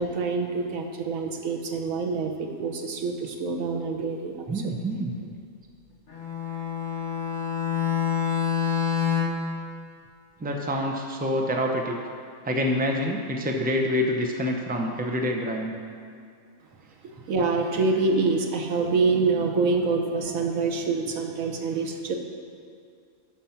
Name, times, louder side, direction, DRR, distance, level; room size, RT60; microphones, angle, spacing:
voice 1, 0.0-4.5 17.3-22.1, right 4 dB, 90° right, 3 dB, 1.3 m, -26 dB
voice 2, 4.5-5.1 10.4-12.0 12.4-15.7, equal, 10° right, 1 dB, 0.6 m, -26 dB
Bowed string instrument, 6.1-9.5, left 7 dB, 40° left, 1.2 m, -27 dB
12.0 x 4.6 x 5.8 m, 2.3 s
omnidirectional pair, 1.4 m